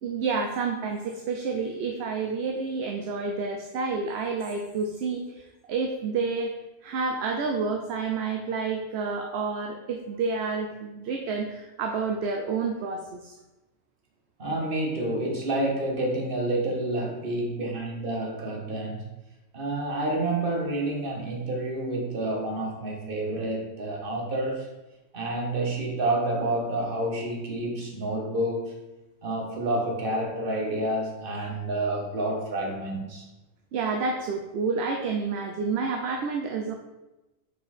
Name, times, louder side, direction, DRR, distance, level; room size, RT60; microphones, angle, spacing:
voice 1, 0.0-6.5 6.8-13.3 33.7-36.7, right 4 dB, 65° right, 3 dB, 0.8 m, -29 dB
voice 2, 14.4-19.1 19.5-24.7 25.1-28.8 29.2-33.3, right 1 dB, 50° right, 0 dB, 1.3 m, -29 dB
5.0 x 4.5 x 4.1 m, 1.0 s
omnidirectional pair, 1.3 m